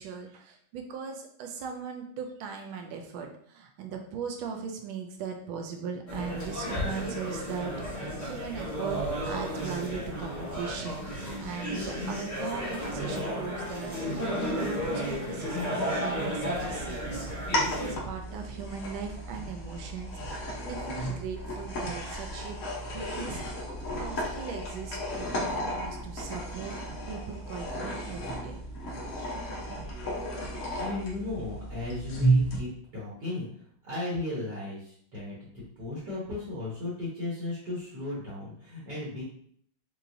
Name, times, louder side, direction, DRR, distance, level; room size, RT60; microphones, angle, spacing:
voice 1, 0.0-9.0 9.3-17.2 17.6-22.6 22.9-26.8 27.1-28.6, right 6 dB, 85° right, 3 dB, 1.4 m, -39 dB
sound 1, 6.1-17.9, equal, 25° left, 0.4 m, -33 dB
sound 2, 16.5-32.6, right 1 dB, 50° left, 1.1 m, -33 dB
voice 2, 29.8-30.1 30.8-33.5 33.8-35.5 35.8-39.2, left 2 dB, 60° right, -6 dB, 1.6 m, -35 dB
5.4 x 2.7 x 2.6 m, 0.63 s
omnidirectional pair, 2.2 m